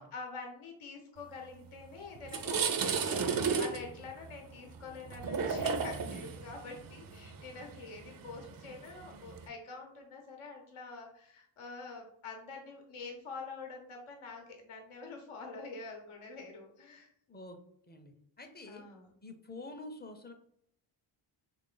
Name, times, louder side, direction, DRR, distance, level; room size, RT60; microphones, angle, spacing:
voice 1, 0.0-17.1 18.7-19.1, left 4 dB, 75° left, 2 dB, 0.8 m, -46 dB
sound 1, 1.7-1.8 2.2-9.5, right 5 dB, 45° right, 0.5 m, -34 dB
voice 2, 17.9-18.9 19.2-20.3, left 2 dB, 20° left, 5 dB, 0.5 m, -47 dB
3.2 x 2.5 x 3.8 m, 0.70 s
cardioid pair, 65°, 49 cm